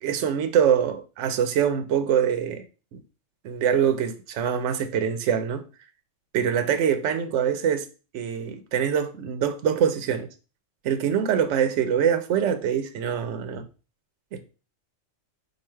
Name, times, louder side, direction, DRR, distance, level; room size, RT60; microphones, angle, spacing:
voice 1, 0.0-2.6 2.9-3.0 3.4-5.6 6.3-7.9 8.1-10.3 10.8-13.6 14.3-14.5, right 8 dB, 70° right, 0.9 m, -24 dB
4.8 x 2.4 x 4.4 m
omnidirectional pair, 1.4 m